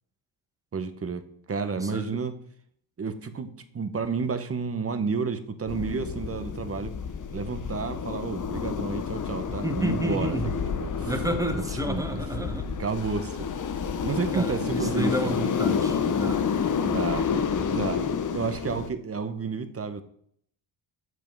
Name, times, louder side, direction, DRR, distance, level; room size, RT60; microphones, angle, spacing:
voice 1, 0.7-2.4 3.0-6.9 7.3-11.1 11.9-13.5 14.0-15.4 16.8-17.3 17.6-18.0 18.3-20.0, right 5 dB, 30° right, 10 dB, 0.9 m, -31 dB
sound 1, 5.7-18.9, left 6 dB, 40° left, 0.8 m, -29 dB
voice 2, 9.6-10.5 11.0-12.7 14.3-16.4, right 1 dB, 5° right, 5 dB, 1.3 m, -30 dB
7.9 x 5.1 x 4.6 m, 0.64 s
cardioid pair, 85°, 47 cm